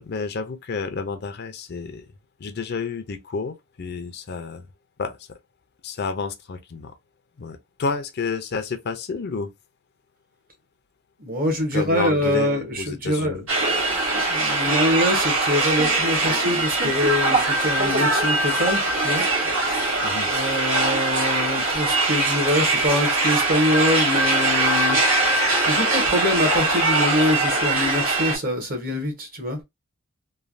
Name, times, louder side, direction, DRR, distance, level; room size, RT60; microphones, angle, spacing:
voice 1, 0.0-2.1 2.4-4.7 5.0-5.2 5.8-6.9 7.4-9.5 11.7-13.5 20.0-20.3, left 4 dB, 50° left, 0.5 m, -30 dB
voice 2, 11.2-13.4 14.1-19.2 19.7-19.8 20.3-25.0 25.7-29.6, left 1 dB, 45° right, 1.0 m, -24 dB
sound 1, 13.5-28.4, right 2 dB, 65° right, 1.4 m, -22 dB
3.2 x 2.2 x 2.5 m
head